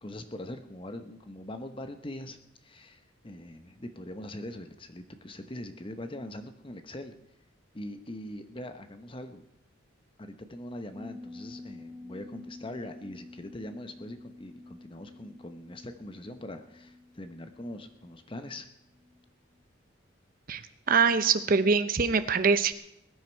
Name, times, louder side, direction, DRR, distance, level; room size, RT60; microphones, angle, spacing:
voice 1, 0.0-7.1 7.7-9.4 10.2-18.7, left 1 dB, 25° left, 8 dB, 0.9 m, -42 dB
sound 1, 10.9-19.2 19.5-19.6, left 2 dB, 5° left, 5.7 m, -49 dB
voice 2, 20.9-22.7, right 5 dB, 45° right, 11 dB, 0.7 m, -23 dB
21.0 x 9.3 x 4.6 m, 0.79 s
head